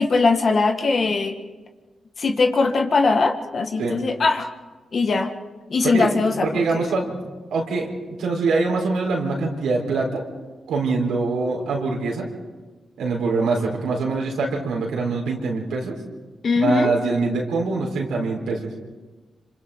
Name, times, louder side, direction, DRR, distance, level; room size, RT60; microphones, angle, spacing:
voice 1, 0.0-1.3 2.2-4.5 4.9-5.3 5.7-6.8 16.4-16.9, left 3 dB, 55° left, 5 dB, 1.8 m, -20 dB
voice 2, 6.4-7.2 7.5-10.3 10.7-12.3 13.0-16.0 16.5-18.7, right 3 dB, 85° right, -1 dB, 4.2 m, -24 dB
26.5 x 26.0 x 3.9 m, 1.3 s
cardioid pair, 55°, 0 cm